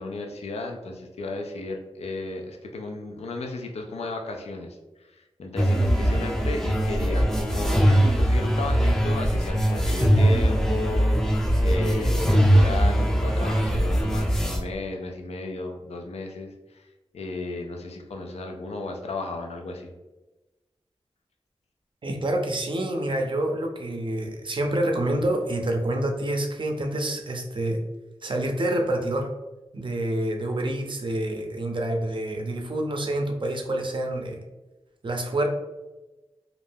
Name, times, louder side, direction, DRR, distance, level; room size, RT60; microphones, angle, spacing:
voice 1, 0.0-4.8 5.1-11.4 11.6-16.9 17.1-19.9, left 2 dB, 75° left, 3 dB, 0.4 m, -34 dB
sound 1, 5.6-14.6, equal, 5° left, 0.5 m, -21 dB
voice 2, 22.0-27.8 28.2-29.3 29.7-34.4 35.0-35.5, right 1 dB, 50° right, 3 dB, 0.5 m, -27 dB
2.4 x 2.1 x 3.2 m, 1.1 s
cardioid pair, 45°, 11 cm